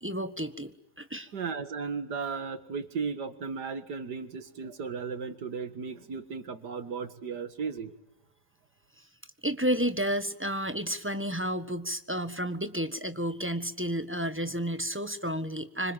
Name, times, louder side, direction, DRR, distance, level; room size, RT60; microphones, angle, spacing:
voice 1, 0.0-1.3 9.4-15.9, equal, 10° right, 10 dB, 1.3 m, -31 dB
voice 2, 1.3-8.0, right 5 dB, 90° right, 11 dB, 2.4 m, -35 dB
26.0 x 25.0 x 9.0 m, 0.78 s
omnidirectional pair, 1.7 m